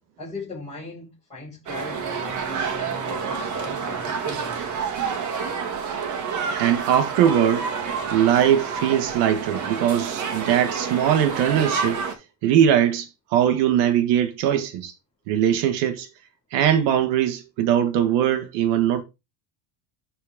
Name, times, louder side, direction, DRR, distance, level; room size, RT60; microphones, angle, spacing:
voice 1, 0.2-4.8, left 2 dB, 15° left, 5.4 m, -38 dB
sound 1, 1.7-12.1, right 6 dB, 35° right, 1.9 m, -29 dB
voice 2, 6.6-7.7 8.1-12.0 12.4-14.9 15.3-16.1 16.5-19.0, right 10 dB, 55° right, 1.6 m, -21 dB
12.0 x 4.4 x 3.6 m
supercardioid pair, 145°, 49 cm